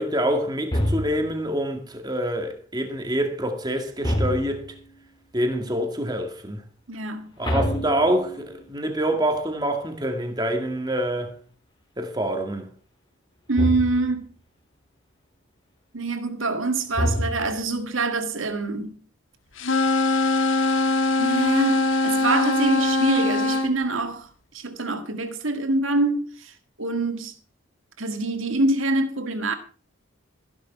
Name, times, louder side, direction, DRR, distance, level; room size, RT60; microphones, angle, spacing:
voice 1, 0.0-4.6 5.3-6.6 7.4-11.3 12.0-12.7, right 1 dB, 20° right, 2.1 m, -26 dB
sound 1, 0.7-1.5 4.0-4.8 7.4-8.6 13.5-14.2 16.9-17.8, equal, 20° left, 3.0 m, -26 dB
voice 2, 6.9-7.3 13.5-14.3 15.9-19.0 21.2-27.4 28.0-29.5, right 2 dB, 70° right, 1.9 m, -25 dB
sound 2, 19.6-23.7, left 2 dB, 65° left, 1.6 m, -22 dB
15.0 x 11.0 x 4.5 m
head